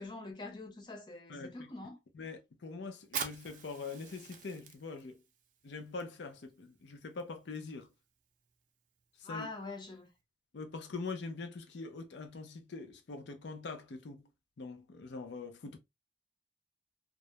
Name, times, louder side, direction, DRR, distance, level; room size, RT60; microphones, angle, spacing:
voice 1, 0.0-2.0 9.2-10.1, left 2 dB, 25° left, 0.5 m, -44 dB
voice 2, 2.2-5.1 5.6-7.8 9.3-9.5 10.5-14.2 14.6-15.8, left 4 dB, 75° left, 0.5 m, -43 dB
Fire, 3.0-10.2, right 7 dB, 45° right, 0.4 m, -47 dB
2.2 x 2.1 x 2.7 m
head